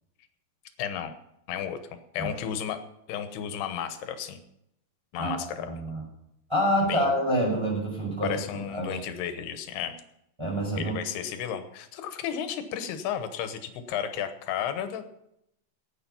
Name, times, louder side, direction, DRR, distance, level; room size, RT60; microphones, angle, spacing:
voice 1, 0.8-1.1 1.5-1.8 2.1-2.8 3.1-4.4 5.1-5.7 6.8-7.1 8.2-9.9 10.8-15.1, left 9 dB, 90° left, 9 dB, 3.1 m, -33 dB
voice 2, 5.6-6.0 6.5-8.3 8.7-8.9 10.4-10.9, equal, 5° right, -3 dB, 5.2 m, -27 dB
16.0 x 9.7 x 5.6 m, 0.80 s
omnidirectional pair, 4.4 m